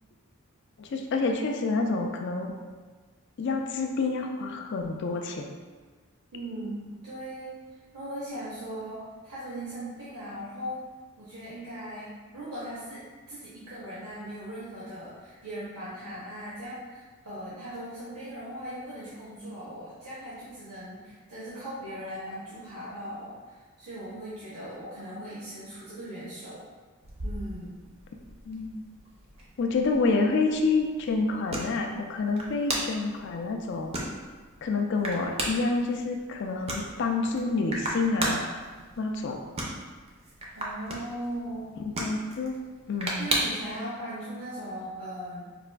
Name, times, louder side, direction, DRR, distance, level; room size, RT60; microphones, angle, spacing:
voice 1, 0.8-2.5 3.4-5.5 28.5-28.8 29.6-33.9 34.6-38.5 39.0-39.4 42.0-42.5 42.9-43.3, left 3 dB, 50° left, 3 dB, 0.3 m, -28 dB
voice 2, 6.3-7.5 7.9-10.9 11.2-26.6 27.2-27.8 40.6-41.8 43.2-45.5, right 1 dB, 80° right, -10 dB, 0.8 m, -39 dB
sound 1, 27.0-43.8, right 1 dB, 25° right, 0.4 m, -37 dB
4.7 x 2.4 x 2.2 m, 1.4 s
head